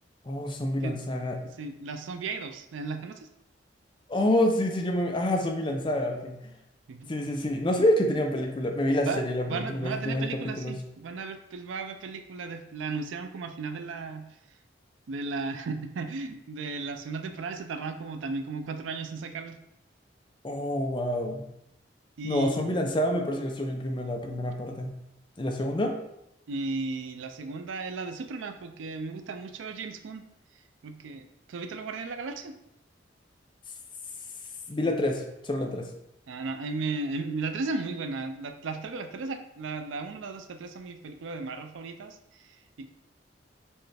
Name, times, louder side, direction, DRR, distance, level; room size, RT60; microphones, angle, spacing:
voice 1, 0.2-1.4 4.1-6.4 7.1-10.8 20.4-21.4 22.2-25.0 25.4-26.0 34.7-35.9, left 1 dB, 25° left, 3 dB, 0.5 m, -27 dB
voice 2, 1.6-3.3 6.9-7.1 9.1-14.2 15.1-19.6 22.2-22.7 26.5-30.3 30.8-32.6 36.3-42.9, right 4 dB, 90° right, 8 dB, 0.4 m, -35 dB
4.4 x 3.3 x 3.3 m, 0.82 s
head